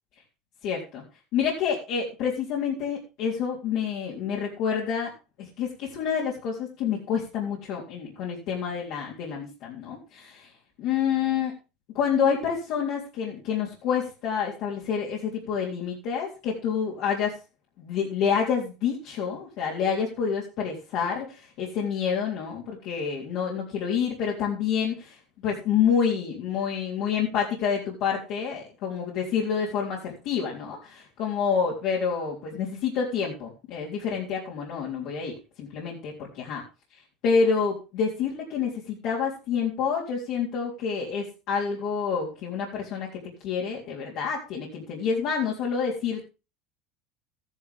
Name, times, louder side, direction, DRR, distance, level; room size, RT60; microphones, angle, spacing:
voice 1, 0.6-1.0 1.3-5.1 5.4-10.5 10.8-11.5 11.9-17.4 17.8-25.2 25.4-36.6 37.2-46.3, left 6 dB, 60° left, -4 dB, 3.7 m, -28 dB
13.5 x 11.0 x 3.6 m, 0.31 s
supercardioid pair, 120°, 0 cm